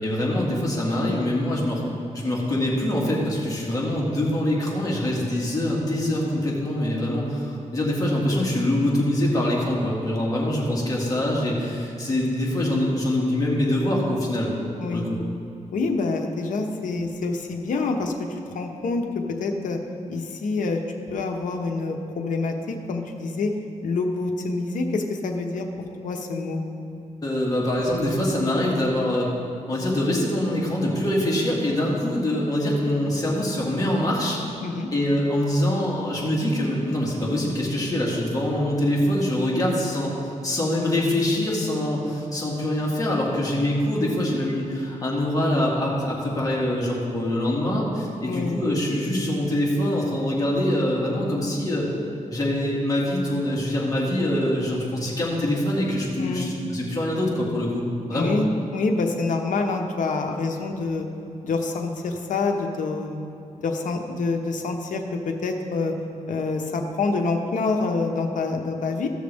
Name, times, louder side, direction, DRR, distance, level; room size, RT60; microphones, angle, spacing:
voice 1, 0.0-1.8 2.1-14.5 14.9-15.2 27.2-29.3 29.7-34.4 34.9-51.9 52.3-57.8 58.1-58.4, left 1 dB, 30° left, -4 dB, 2.3 m, -24 dB
voice 2, 15.7-19.8 20.1-20.8 21.1-23.5 23.8-25.7 26.0-26.6 34.6-34.9 48.3-48.6 56.2-56.5 58.1-61.1 61.4-63.3 63.6-65.9 66.3-69.1, left 3 dB, 85° left, 3 dB, 1.0 m, -26 dB
15.5 x 6.5 x 3.5 m, 2.6 s
cardioid pair, 100°, 13 cm